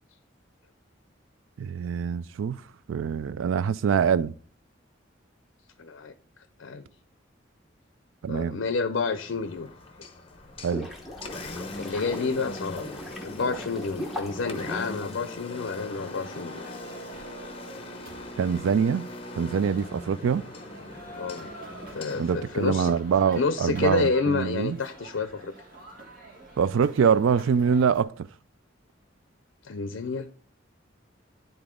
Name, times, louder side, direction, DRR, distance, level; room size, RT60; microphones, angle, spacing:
voice 1, 1.6-2.6 2.9-4.3 8.2-8.6 10.6-10.9 18.4-19.1 19.4-20.5 22.2-24.8 26.6-28.3, right 6 dB, 85° right, 0.3 m, -24 dB
voice 2, 5.8-6.1 6.6-6.9 8.3-9.7 11.8-13.0 13.2-16.7 21.2-21.5 21.9-22.9 23.4-25.5 29.6-30.3, left 4 dB, 75° left, 0.5 m, -29 dB
Engine, 9.1-23.2, left 2 dB, 30° left, 0.8 m, -41 dB
sound 1, 10.3-15.7, left 1 dB, ahead, 1.2 m, -39 dB
sound 2, 15.5-28.0, right 1 dB, 45° right, 1.7 m, -47 dB
9.5 x 4.0 x 3.6 m
head